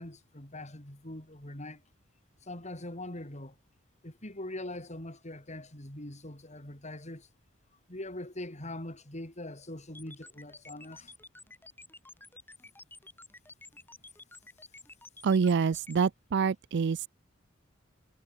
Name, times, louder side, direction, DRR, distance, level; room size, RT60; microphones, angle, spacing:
voice 1, 0.0-1.8 2.5-3.5 4.0-7.3 7.9-11.1, left 1 dB, 35° left, 4.8 m, -42 dB
sound 1, 9.9-16.1, left 2 dB, 10° left, 4.2 m, -51 dB
voice 2, 15.2-17.1, right 5 dB, 60° right, 0.4 m, -26 dB
head